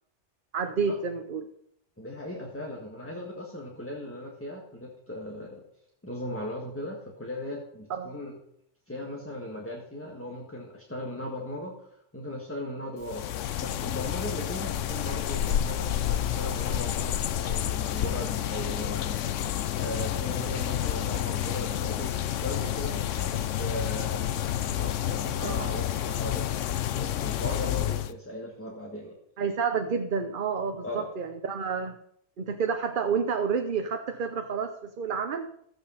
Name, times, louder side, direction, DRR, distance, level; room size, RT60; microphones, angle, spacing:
voice 1, 0.5-1.5 7.9-8.1 25.4-25.6 29.4-31.9 32.4-35.5, right 5 dB, 50° right, 6 dB, 0.9 m, -29 dB
voice 2, 2.0-5.6 6.0-8.4 8.9-13.3 13.6-29.2 30.8-31.1, left 1 dB, 10° left, -1 dB, 1.7 m, -38 dB
sound 1, 13.0-28.1, left 11 dB, 85° left, 1.0 m, -29 dB
14.0 x 8.6 x 5.7 m, 0.70 s
omnidirectional pair, 1.2 m